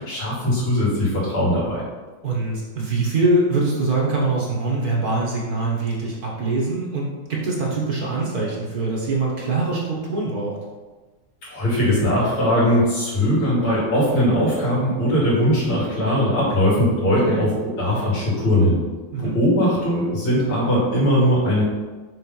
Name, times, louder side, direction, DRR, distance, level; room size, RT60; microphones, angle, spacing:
voice 1, 0.0-1.8 11.5-18.8 19.2-21.6, equal, 75° left, -7 dB, 3.4 m, -20 dB
voice 2, 2.2-10.5 17.2-17.5 19.1-19.4, right 2 dB, 50° right, -3 dB, 1.6 m, -23 dB
6.4 x 3.8 x 5.4 m, 1.3 s
omnidirectional pair, 2.3 m